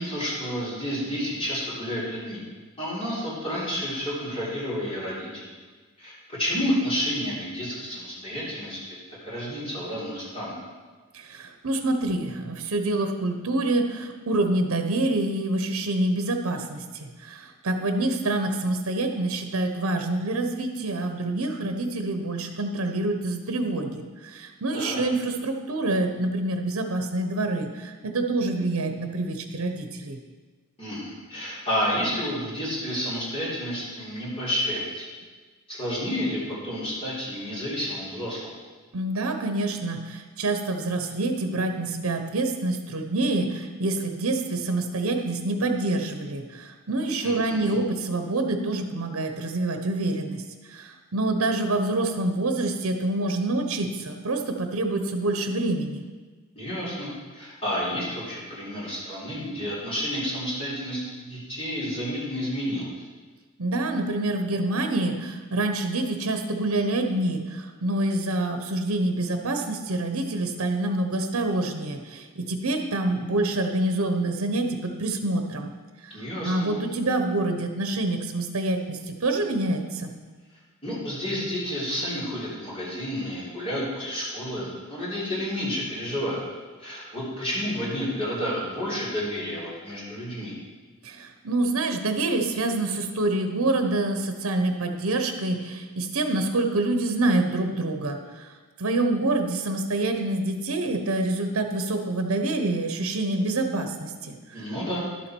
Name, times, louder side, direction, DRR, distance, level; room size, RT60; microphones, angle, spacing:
voice 1, 0.0-2.4 2.8-5.5 6.0-9.0 9.3-10.6 24.7-25.0 30.8-35.1 35.7-38.5 47.2-47.8 56.6-63.1 76.1-76.7 80.8-86.4 86.8-90.5 104.5-105.0, equal, 25° left, -8 dB, 3.6 m, -30 dB
voice 2, 11.1-30.2 38.9-50.4 50.7-56.0 63.6-75.7 76.4-80.1 91.0-98.2 98.8-104.6, right 2 dB, 75° right, 6 dB, 0.8 m, -26 dB
11.5 x 7.0 x 4.6 m, 1.4 s
head